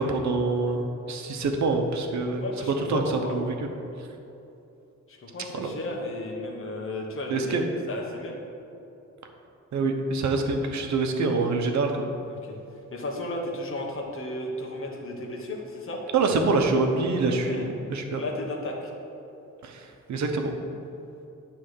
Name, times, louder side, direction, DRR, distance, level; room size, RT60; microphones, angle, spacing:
voice 1, 0.0-2.4 2.9-3.5 5.5-5.7 7.3-7.6 9.7-12.1 16.1-18.2 19.6-20.5, right 3 dB, 70° right, 4 dB, 0.9 m, -25 dB
voice 2, 2.4-3.4 5.1-7.6 7.9-8.4 12.3-12.6 12.9-16.0 17.4-17.7 18.1-18.9, left 1 dB, 45° left, -1 dB, 1.3 m, -34 dB
9.5 x 3.4 x 6.6 m, 2.8 s
cardioid pair, 125°, 30 cm